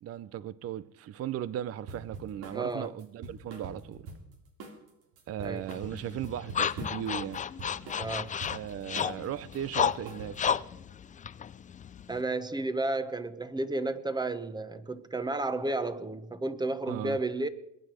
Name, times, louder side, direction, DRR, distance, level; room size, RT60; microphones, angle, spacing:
voice 1, 0.0-4.1 5.3-7.4 8.5-10.6 16.9-17.2, right 10 dB, 40° right, 0.6 m, -37 dB
sound 1, 1.9-2.6 3.0-4.3 4.6-4.9 5.2-7.1 7.3-8.6 9.0-9.2 9.5-10.6, right 3 dB, 75° right, 3.5 m, -44 dB
voice 2, 2.5-2.9 5.4-5.6 8.0-8.3 12.1-17.5, right 2 dB, 10° right, 1.1 m, -32 dB
sound 2, 5.7-12.2, left 8 dB, 20° left, 0.4 m, -33 dB
21.5 x 9.7 x 5.0 m
supercardioid pair, 100°, 39 cm